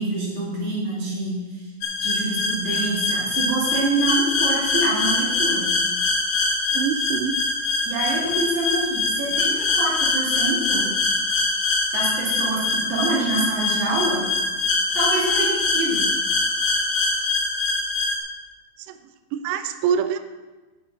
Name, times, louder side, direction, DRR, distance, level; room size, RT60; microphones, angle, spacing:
voice 1, 0.0-1.7 2.0-5.7 7.8-10.9 11.9-14.3 14.9-16.0, right 2 dB, 55° right, -7 dB, 5.0 m, -26 dB
sound 1, 1.8-18.2, left 3 dB, 65° left, 3.1 m, -23 dB
voice 2, 6.7-7.4 18.9-19.0 19.3-20.2, right 7 dB, 90° right, 9 dB, 2.5 m, -24 dB
11.0 x 8.8 x 4.0 m, 1.2 s
omnidirectional pair, 5.7 m